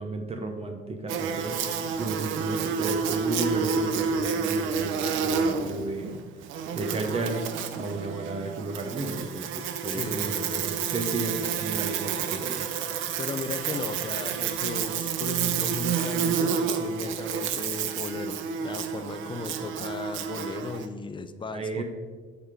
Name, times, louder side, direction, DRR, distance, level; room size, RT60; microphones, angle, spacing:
voice 1, 0.0-1.6 2.0-6.2 6.7-7.4 7.8-12.7 21.5-21.8, right 2 dB, 30° right, 4 dB, 0.8 m, -33 dB
Buzz, 1.1-20.9, right 6 dB, 75° right, 0.6 m, -29 dB
voice 2, 9.8-10.9 13.2-21.8, left 4 dB, 25° left, 10 dB, 0.6 m, -36 dB
7.9 x 5.9 x 3.6 m, 1.5 s
cardioid pair, 90°, 20 cm